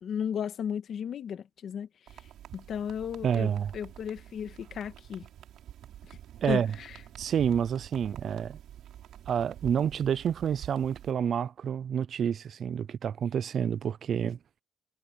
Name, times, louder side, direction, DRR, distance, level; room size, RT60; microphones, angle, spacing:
voice 1, 0.0-1.9 2.5-5.3 6.5-6.6, left 8 dB, 65° left, 1.7 m, -34 dB
sound 1, 2.1-11.1, right 11 dB, 80° right, 3.2 m, -47 dB
voice 2, 3.2-3.7 6.4-6.8 7.2-8.6 9.3-14.4, right 8 dB, 60° right, 0.5 m, -29 dB
cardioid pair, 90°, 0 cm